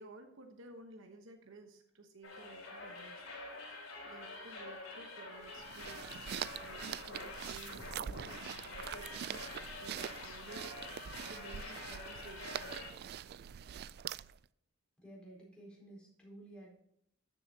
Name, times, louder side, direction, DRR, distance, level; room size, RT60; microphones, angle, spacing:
voice 1, 0.0-3.2 4.0-6.3 6.5-11.0 11.3-12.7, right 2 dB, 65° right, 5 dB, 1.1 m, -55 dB
sound 1, 2.2-12.9, left 3 dB, 75° left, 3.4 m, -47 dB
sound 2, 5.4-14.4, right 9 dB, 50° right, 0.3 m, -44 dB
voice 2, 15.0-16.7, right 1 dB, 5° left, -4 dB, 4.2 m, -53 dB
13.5 x 6.9 x 2.8 m, 0.73 s
head